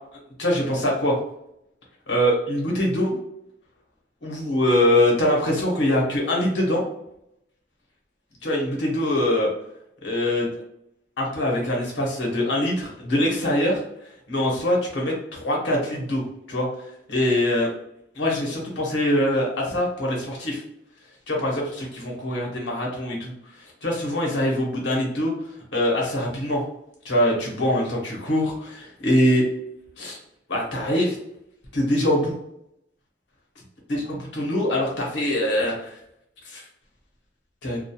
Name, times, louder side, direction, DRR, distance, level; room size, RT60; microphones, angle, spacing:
voice 1, 0.4-1.2 2.1-3.2 4.2-6.8 8.4-9.5 10.0-10.5 11.2-13.8 14.3-16.7 17.1-17.7 18.1-20.6 21.3-25.3 25.7-26.6 27.0-29.4 30.0-30.2 30.5-31.2 31.7-32.3 34.2-35.9 36.4-36.6 37.6-37.8, left 1 dB, 75° left, -2 dB, 0.9 m, -23 dB
2.3 x 2.2 x 2.8 m, 0.78 s
head